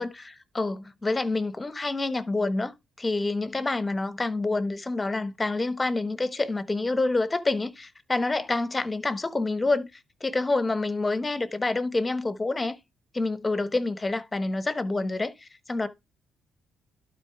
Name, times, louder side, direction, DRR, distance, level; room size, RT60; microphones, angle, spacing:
voice 1, 0.0-9.9 10.2-12.8 13.1-15.9, left 2 dB, 20° left, 1.1 m, -27 dB
12.0 x 4.2 x 3.4 m
cardioid pair, 90°, 0 cm